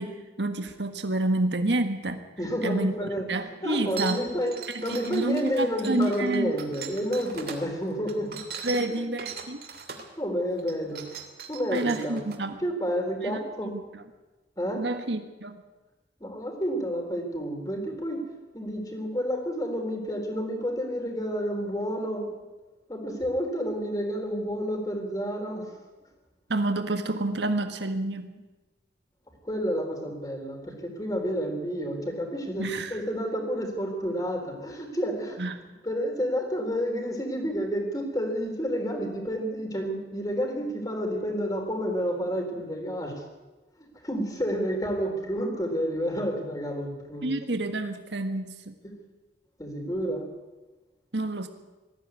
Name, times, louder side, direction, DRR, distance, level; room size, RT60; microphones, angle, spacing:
voice 1, 0.0-2.2 2.6-2.9 3.3-4.2 4.9-6.5 8.6-9.6 11.7-12.6 13.2-13.4 13.7-13.8 14.8-15.6 26.5-28.3 32.6-32.9 35.4-35.6 47.2-48.7 51.1-51.5, right 2 dB, 80° right, 7 dB, 1.6 m, -28 dB
voice 2, 2.4-3.2 3.6-9.1 10.2-11.1 11.5-12.2 12.6-13.7 14.6-14.8 16.2-18.3 18.5-22.3 22.9-25.7 29.4-35.4 35.8-43.2 43.8-47.3 48.8-48.9 49.6-50.3, equal, 20° left, 3 dB, 3.9 m, -30 dB
sound 1, 3.9-7.6 8.1-10.1 10.6-12.4, right 6 dB, 55° right, 2.9 m, -39 dB
19.5 x 15.0 x 9.7 m, 1.2 s
head